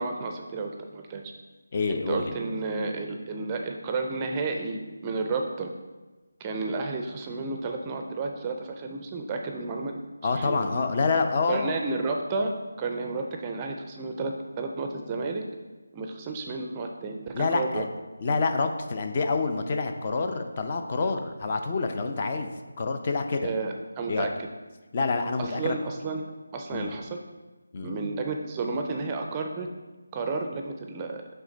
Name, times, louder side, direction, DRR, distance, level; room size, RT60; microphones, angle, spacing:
voice 1, 0.0-1.3 1.9-5.7 6.4-10.0 10.4-10.6 11.5-15.4 15.9-17.8 23.4-24.3 25.4-26.2 26.5-27.2 27.8-29.7 30.1-31.2, right 3 dB, 20° right, 3 dB, 0.4 m, -32 dB
voice 2, 1.7-2.3 10.2-11.8 17.3-17.9 18.2-22.5 22.8-23.5 24.1-24.3 24.9-25.7 26.7-26.9 27.7-27.9, left 4 dB, 35° left, 6 dB, 0.5 m, -27 dB
8.1 x 3.4 x 4.0 m, 1.2 s
figure-of-eight pair, 165°, 0 cm